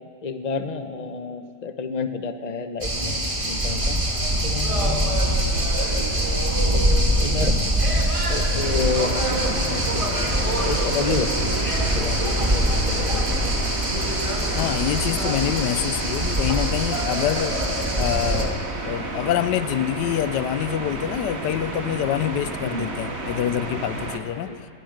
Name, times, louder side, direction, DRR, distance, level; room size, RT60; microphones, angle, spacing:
voice 1, 0.2-4.0 4.4-5.7 6.0-6.1 6.5-6.9 7.2-7.6 8.3-10.0 10.6-13.3 22.6-22.9 24.5-24.7, left 4 dB, 30° left, 8 dB, 1.0 m, -30 dB
sound 1, 2.8-18.4, right 1 dB, 20° right, 2.2 m, -23 dB
sound 2, 8.6-24.2, right 2 dB, 40° right, 2.1 m, -32 dB
voice 2, 14.5-17.6 18.0-24.5, left 11 dB, 85° left, 14 dB, 1.3 m, -26 dB
21.0 x 20.0 x 6.5 m, 2.3 s
omnidirectional pair, 1.8 m